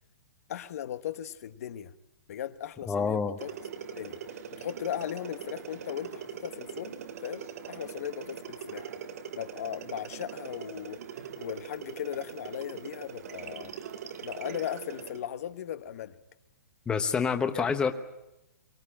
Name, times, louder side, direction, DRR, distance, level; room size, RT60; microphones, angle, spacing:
voice 1, 0.5-1.9 2.3-3.5 3.9-4.2 4.5-8.9 9.3-11.0 11.4-13.7 14.2-16.2 17.5-17.6, left 10 dB, 60° left, 1.2 m, -37 dB
voice 2, 2.9-3.4 16.9-17.9, left 5 dB, 10° left, 1.0 m, -27 dB
sound 1, 3.4-15.2, right 7 dB, 60° right, 1.8 m, -42 dB
23.5 x 18.0 x 10.0 m
hypercardioid pair, 155°, 9 cm